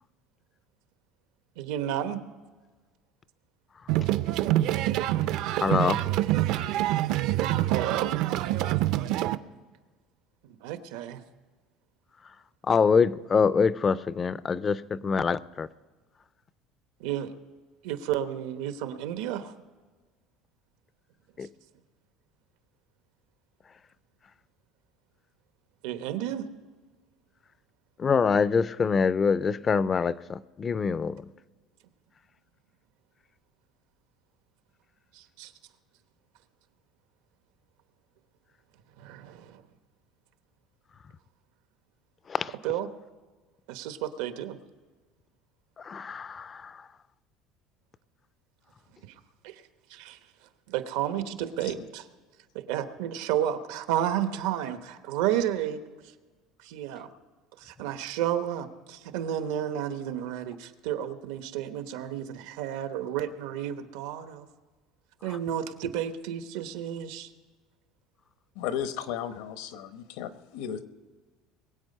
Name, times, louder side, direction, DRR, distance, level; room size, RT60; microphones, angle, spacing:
voice 1, 1.6-2.2 7.7-8.1 10.4-11.2 17.0-17.3 17.8-19.5 25.8-26.4 35.1-35.5 39.0-39.6 42.6-42.9 43.7-44.6 49.1-49.2 49.4-49.6 49.9-50.2 50.7-52.0 52.5-55.8 56.6-57.1 57.6-64.5 65.2-67.3, right 11 dB, 85° right, 1.0 m, -31 dB
sound 1, 3.9-9.4, right 14 dB, 55° right, 0.4 m, -26 dB
voice 2, 5.6-6.1 12.7-15.7 21.4-21.5 28.0-31.3 42.3-42.5 45.8-46.9, left 5 dB, 20° left, 0.3 m, -25 dB
voice 3, 68.5-70.8, left 9 dB, 85° left, 1.0 m, -34 dB
22.0 x 8.4 x 5.4 m
cardioid pair, 175°, 0 cm